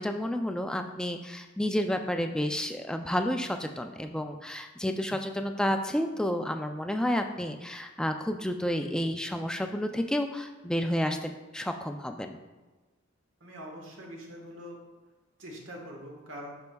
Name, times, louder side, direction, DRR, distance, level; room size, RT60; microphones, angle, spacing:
voice 1, 0.0-12.4, equal, 5° left, 5 dB, 0.3 m, -30 dB
voice 2, 13.4-14.8 15.4-16.5, equal, 80° right, 0 dB, 1.5 m, -43 dB
10.5 x 4.6 x 2.3 m, 1.2 s
head